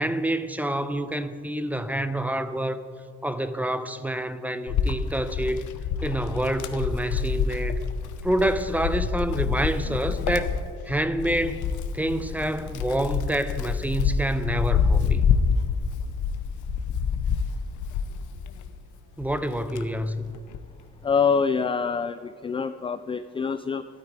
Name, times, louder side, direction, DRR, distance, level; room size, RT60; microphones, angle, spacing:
voice 1, 0.0-2.8 3.2-5.6 6.0-7.8 8.2-10.5 10.9-11.7 11.9-15.2 19.2-20.4, right 1 dB, 5° right, 11 dB, 0.7 m, -27 dB
Wind, 4.7-18.8 19.2-20.7, left 6 dB, 80° left, 0.8 m, -27 dB
voice 2, 21.0-23.9, left 5 dB, 20° left, 12 dB, 0.3 m, -25 dB
12.5 x 12.5 x 4.8 m, 2.1 s
cardioid pair, 90°, 30 cm